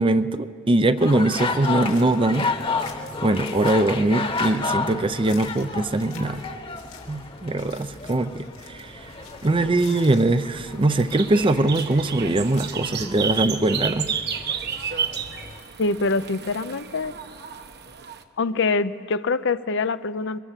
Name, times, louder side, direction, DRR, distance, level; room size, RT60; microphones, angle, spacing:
voice 1, 0.0-2.5 2.7-2.9 3.2-6.4 7.1-9.1 9.4-14.1, right 2 dB, 25° right, 12 dB, 0.5 m, -22 dB
sound 1, 1.0-15.6, left 4 dB, 25° left, 1.1 m, -32 dB
sound 2, 1.3-14.1, left 7 dB, 85° left, 3.3 m, -50 dB
sound 3, 9.0-18.2, right 7 dB, 55° right, 1.1 m, -32 dB
voice 2, 15.8-17.1 18.4-20.4, left 3 dB, 65° left, 13 dB, 0.6 m, -24 dB
23.5 x 21.0 x 7.4 m, 2.3 s
head